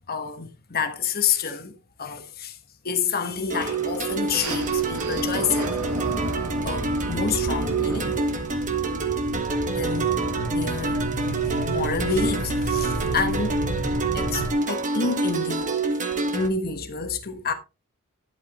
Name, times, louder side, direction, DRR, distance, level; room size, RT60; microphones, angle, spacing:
voice 1, 0.1-2.6 2.8-5.8 6.6-8.1 9.7-11.0 11.7-13.6 14.1-15.6 16.3-17.5, left 5 dB, 45° left, 1.3 m, -28 dB
sound 1, 3.5-16.5, right 3 dB, 35° right, 1.3 m, -27 dB
sound 2, 3.5-14.5, right 1 dB, 85° right, 1.8 m, -32 dB
11.5 x 8.3 x 3.0 m
head